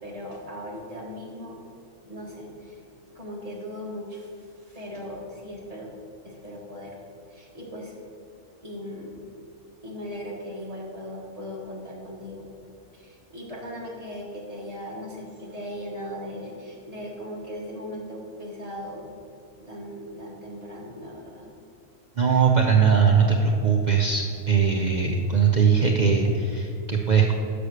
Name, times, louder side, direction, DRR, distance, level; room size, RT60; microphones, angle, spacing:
voice 1, 0.0-1.6 2.0-2.8 3.1-5.9 6.2-7.0 7.3-7.9 8.6-9.2 9.8-12.5 12.9-19.0 19.6-21.5, equal, 30° right, -3 dB, 1.3 m, -38 dB
voice 2, 22.2-27.3, right 6 dB, 65° right, 1 dB, 0.4 m, -20 dB
6.1 x 5.0 x 6.4 m, 2.6 s
omnidirectional pair, 1.4 m